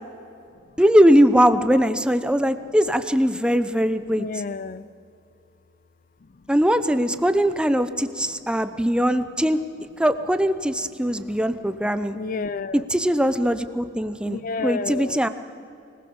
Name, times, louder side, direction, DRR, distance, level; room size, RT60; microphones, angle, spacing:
voice 1, 0.8-4.3 6.5-9.6 10.0-12.1 12.7-15.3, equal, 5° right, 11 dB, 0.8 m, -20 dB
voice 2, 4.2-4.8 12.1-12.9 14.2-15.3, left 4 dB, 45° left, 16 dB, 0.5 m, -30 dB
25.0 x 19.5 x 7.1 m, 2.5 s
head